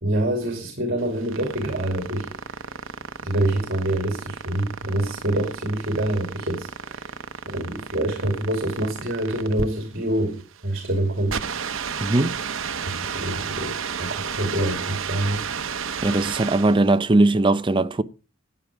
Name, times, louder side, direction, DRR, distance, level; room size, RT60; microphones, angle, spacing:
voice 1, 0.0-2.8 3.2-7.2 7.4-11.4 12.9-15.5, right 1 dB, 50° right, 2.6 m, -26 dB
sound 1, 1.0-16.9, right 6 dB, 80° right, 0.8 m, -32 dB
voice 2, 12.0-12.4 16.0-18.0, right 2 dB, 25° right, 0.6 m, -19 dB
13.0 x 8.9 x 4.8 m
head